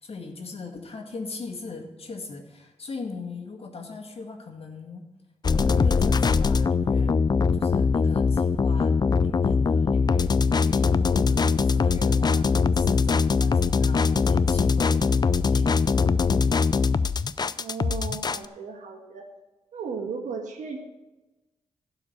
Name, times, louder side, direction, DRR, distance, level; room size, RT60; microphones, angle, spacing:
voice 1, 0.0-5.0 5.5-7.2 7.5-10.3 10.6-15.8 16.3-16.7, left 3 dB, 55° left, 2 dB, 1.9 m, -40 dB
sound 1, 5.4-18.5, left 5 dB, 35° left, 0.4 m, -22 dB
voice 2, 17.6-19.2 19.7-20.8, right 5 dB, 85° right, 2 dB, 1.7 m, -35 dB
12.0 x 4.9 x 8.7 m, 1.1 s
cardioid pair, 70°, 12 cm